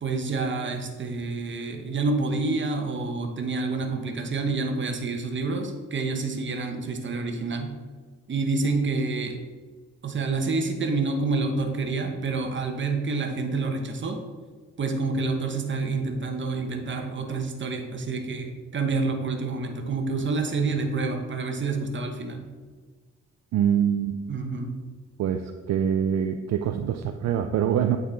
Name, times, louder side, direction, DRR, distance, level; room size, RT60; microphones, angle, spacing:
voice 1, 0.0-7.7 8.3-9.4 10.0-14.2 14.8-22.5 24.3-24.7, right 3 dB, 40° right, 4 dB, 1.1 m, -28 dB
voice 2, 23.5-24.2 25.2-28.0, right 9 dB, 65° right, 6 dB, 0.5 m, -24 dB
8.7 x 4.0 x 4.0 m, 1.4 s
cardioid pair, 85°, 29 cm